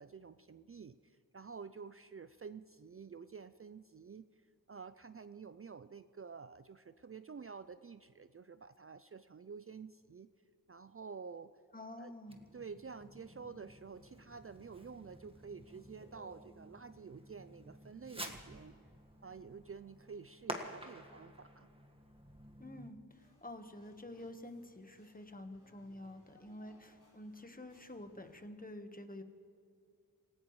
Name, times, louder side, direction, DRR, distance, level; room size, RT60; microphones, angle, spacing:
voice 1, 0.0-10.3 10.7-11.5 12.0-12.1 12.5-18.8 19.2-21.7, right 5 dB, 40° right, 12 dB, 0.4 m, -50 dB
voice 2, 11.7-12.4 22.6-29.2, left 1 dB, 25° left, 7 dB, 1.3 m, -49 dB
Fireworks, 12.3-22.9, right 1 dB, 15° right, 1.6 m, -50 dB
sound 1, 23.1-28.4, left 2 dB, 90° left, 4.4 m, -68 dB
27.5 x 16.0 x 3.2 m, 2.4 s
wide cardioid pair, 65°, 37 cm